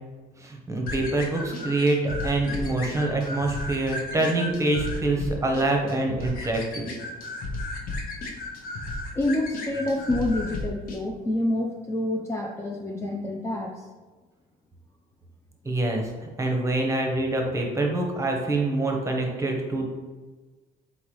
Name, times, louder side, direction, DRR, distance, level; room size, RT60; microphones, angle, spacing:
voice 1, 0.4-6.9 15.6-16.1 16.4-19.8, right 2 dB, 15° right, 1 dB, 0.8 m, -25 dB
sound 1, 0.9-11.0, left 2 dB, 55° left, 0.8 m, -34 dB
voice 2, 9.1-13.9, left 1 dB, 15° left, -1 dB, 0.4 m, -27 dB
3.9 x 3.8 x 3.1 m, 1.3 s
cardioid pair, 110°, 17 cm